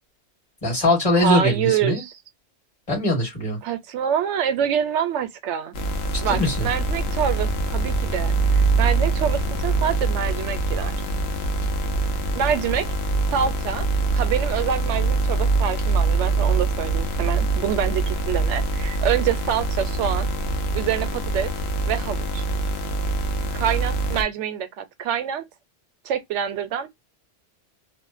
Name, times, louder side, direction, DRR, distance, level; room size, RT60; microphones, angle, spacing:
voice 1, 0.6-2.0 2.9-3.6 6.1-6.7, left 1 dB, 25° left, 1.3 m, -21 dB
voice 2, 1.2-2.1 3.6-5.8 6.2-11.0 12.3-12.9 13.3-13.9 14.1-20.3 20.7-21.5 21.9-22.4 23.5-25.4 26.0-27.0, right 9 dB, 80° right, 0.9 m, -26 dB
sound 1, 5.7-24.2, right 3 dB, 65° left, 0.9 m, -24 dB
2.5 x 2.1 x 2.3 m
omnidirectional pair, 1.2 m